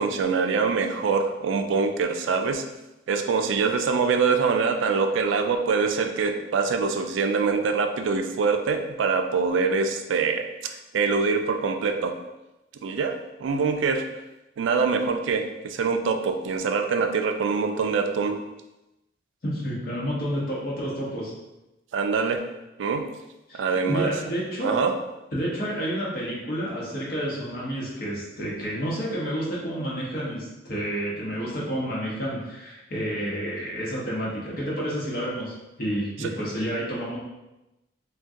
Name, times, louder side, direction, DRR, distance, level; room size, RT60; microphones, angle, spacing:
voice 1, 0.0-2.6 3.1-12.2 12.8-14.1 14.6-18.4 21.9-22.4 22.8-23.1 23.6-24.1 24.6-25.0 36.2-36.3, right 5 dB, 80° right, 6 dB, 0.3 m, -24 dB
voice 2, 19.4-21.3 23.5-23.6 23.9-24.8 25.3-37.2, equal, 50° left, -6 dB, 0.8 m, -30 dB
2.6 x 2.2 x 3.5 m, 0.98 s
head